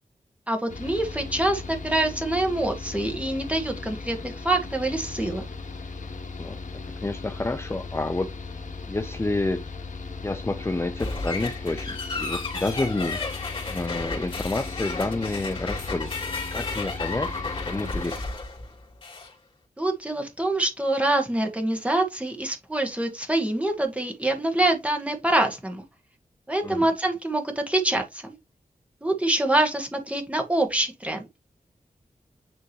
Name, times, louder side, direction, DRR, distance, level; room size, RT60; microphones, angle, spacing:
voice 1, 0.5-5.4 19.8-25.8 26.5-28.4 29.0-31.2, right 1 dB, 10° right, 1.8 m, -25 dB
Mechanical fan, 0.7-18.1, left 4 dB, 65° left, 1.5 m, -37 dB
voice 2, 7.0-8.3 8.9-9.7 10.2-13.3 13.7-18.2 26.6-26.9, left 2 dB, 20° left, 0.7 m, -29 dB
sound 1, 11.0-19.3, left 3 dB, 35° left, 3.1 m, -33 dB
9.8 x 3.6 x 3.0 m
wide cardioid pair, 120°, 14 cm